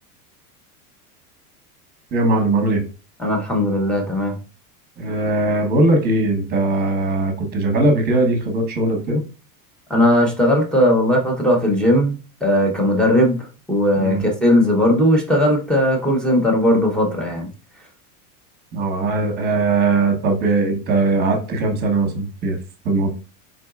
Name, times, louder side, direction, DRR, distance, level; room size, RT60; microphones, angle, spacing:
voice 1, 2.1-2.8 5.0-9.2 14.0-14.2 18.7-22.6 22.8-23.1, right 2 dB, 20° right, 1.0 m, -19 dB
voice 2, 3.2-4.4 9.9-12.1 12.4-13.4 13.7-17.5, equal, ahead, 0.7 m, -17 dB
4.3 x 3.9 x 2.4 m
supercardioid pair, 155°, 44 cm